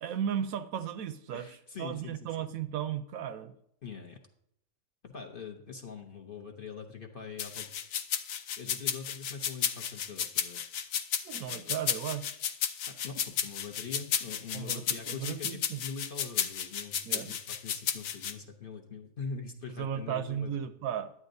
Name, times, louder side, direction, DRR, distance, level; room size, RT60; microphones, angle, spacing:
voice 1, 0.0-3.5 11.2-12.4 14.5-15.8 17.0-17.4 19.8-21.1, right 9 dB, 75° right, 11 dB, 1.0 m, -35 dB
voice 2, 1.3-2.5 3.8-4.2 5.0-7.7 8.6-10.6 11.5-11.7 12.9-20.6, left 5 dB, 40° left, 2 dB, 0.9 m, -43 dB
sound 1, 7.4-18.3, left 9 dB, 70° left, 1.0 m, -33 dB
11.0 x 8.8 x 2.6 m, 0.73 s
omnidirectional pair, 1.6 m